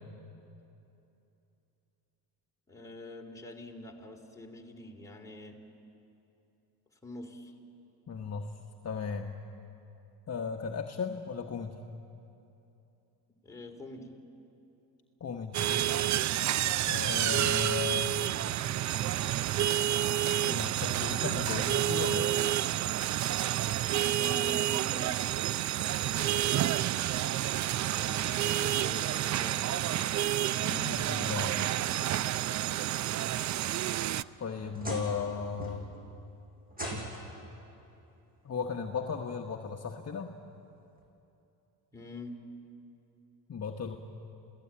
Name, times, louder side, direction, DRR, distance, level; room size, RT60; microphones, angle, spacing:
voice 1, 2.7-5.6 7.0-7.5 13.4-14.2 24.0-25.8 26.1-26.7 27.9-29.8 41.9-42.4, left 1 dB, 5° left, 0 dB, 3.5 m, -45 dB
voice 2, 8.1-8.5 8.8-9.4 10.3-11.8 15.2-15.7 16.9-18.1 20.4-22.3 30.5-31.7 34.4-35.9 38.4-40.3 43.5-44.0, left 5 dB, 35° left, 3 dB, 1.3 m, -36 dB
sound 1, 15.5-34.2, right 12 dB, 45° right, 0.5 m, -29 dB
sound 2, 34.1-35.3 35.6-36.1 36.7-37.4 38.6-38.7 39.3-39.4 41.0-41.1, equal, 20° right, 7.7 m, -40 dB
28.0 x 17.0 x 8.8 m, 2.9 s
cardioid pair, 90°, 42 cm